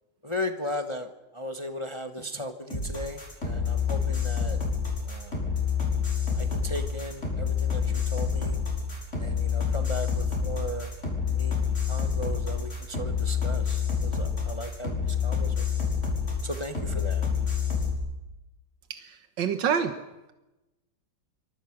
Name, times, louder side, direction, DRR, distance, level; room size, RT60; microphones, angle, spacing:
voice 1, 0.2-4.6 5.0-5.4 6.3-8.6 9.2-10.9 11.3-11.6 11.9-15.9 16.4-17.3, left 1 dB, 20° left, 6 dB, 1.1 m, -37 dB
sound 1, 2.7-17.9, left 6 dB, 40° left, 6.5 m, -28 dB
voice 2, 18.9-20.0, right 7 dB, 85° right, 8 dB, 2.0 m, -27 dB
27.0 x 24.5 x 6.1 m, 1.0 s
omnidirectional pair, 1.9 m